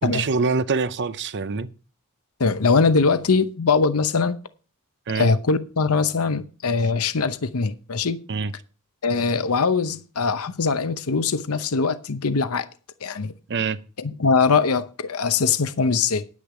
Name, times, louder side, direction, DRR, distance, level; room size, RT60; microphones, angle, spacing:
voice 1, 0.0-1.7 5.1-5.3 8.3-8.5 13.5-13.8, right 4 dB, 50° right, 0.7 m, -24 dB
voice 2, 2.4-4.4 5.1-8.2 9.0-12.7 13.0-13.3 14.0-16.2, left 4 dB, 70° left, 0.8 m, -22 dB
10.0 x 9.7 x 4.9 m
head